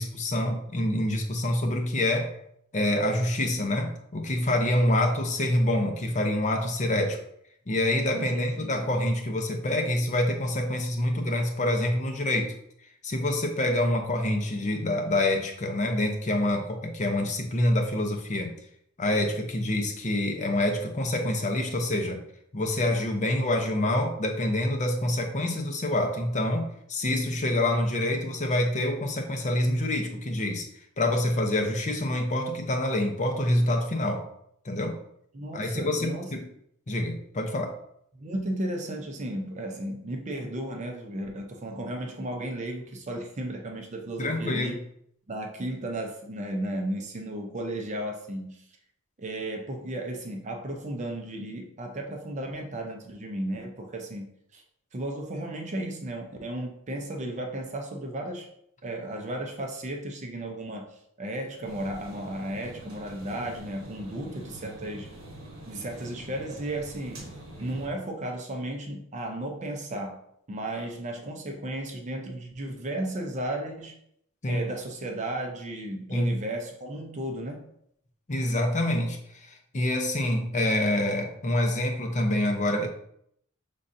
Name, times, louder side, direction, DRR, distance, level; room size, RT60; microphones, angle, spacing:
voice 1, 0.0-2.3 2.7-7.2 7.7-12.5 13.0-18.5 19.0-22.2 22.5-30.7 31.0-34.2 34.6-35.0 35.5-36.5 36.9-37.8 44.2-44.8 74.4-74.7 76.1-76.3 78.3-82.9, left 1 dB, 35° left, 3 dB, 0.7 m, -26 dB
voice 2, 8.1-8.9 35.3-36.3 38.2-44.8 45.3-48.6 49.2-54.6 54.9-58.5 58.8-65.1 65.7-67.3 67.6-70.2 70.5-74.0 74.5-77.7, right 1 dB, 35° right, 2 dB, 0.6 m, -34 dB
sound 1, 61.6-67.9, right 1 dB, 70° right, 1.2 m, -45 dB
5.5 x 3.6 x 2.6 m, 0.72 s
head